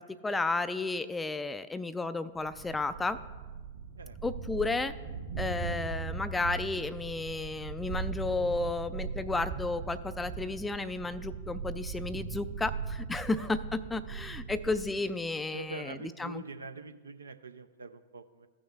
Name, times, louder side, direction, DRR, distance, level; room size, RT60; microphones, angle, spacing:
voice 1, 0.0-3.2 4.2-4.9 5.4-16.4, left 3 dB, 10° left, 13 dB, 0.3 m, -33 dB
Thunder, 2.4-15.1, right 5 dB, 55° right, 2.4 m, -39 dB
voice 2, 15.5-18.5, right 3 dB, 80° right, 9 dB, 0.5 m, -44 dB
16.0 x 6.2 x 2.4 m, 1.4 s
figure-of-eight pair, 100°, 0 cm